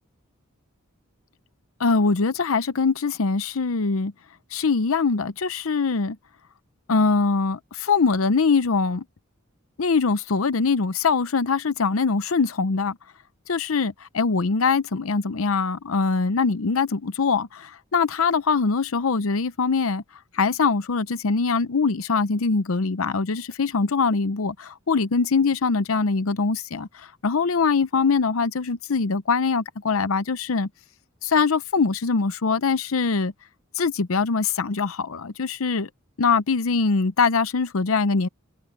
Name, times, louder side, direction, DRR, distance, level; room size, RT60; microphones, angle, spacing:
voice 1, 1.8-4.1 4.5-6.2 6.9-9.0 9.8-13.0 13.5-20.0 20.3-30.7 31.2-33.3 33.7-35.9 36.2-38.3, left 4 dB, 80° left, 0.7 m, -23 dB
head